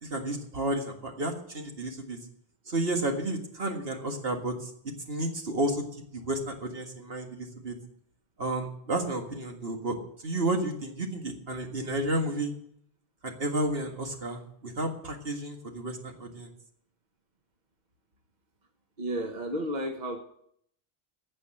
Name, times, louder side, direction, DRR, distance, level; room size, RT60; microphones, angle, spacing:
voice 1, 0.0-2.2 2.7-4.7 5.1-5.8 6.1-7.7 8.4-10.0 10.2-12.5 13.2-16.5, right 1 dB, 65° right, 3 dB, 2.0 m, -31 dB
voice 2, 19.0-20.2, equal, 45° right, 3 dB, 1.3 m, -32 dB
15.5 x 5.4 x 9.8 m, 0.69 s
omnidirectional pair, 1.1 m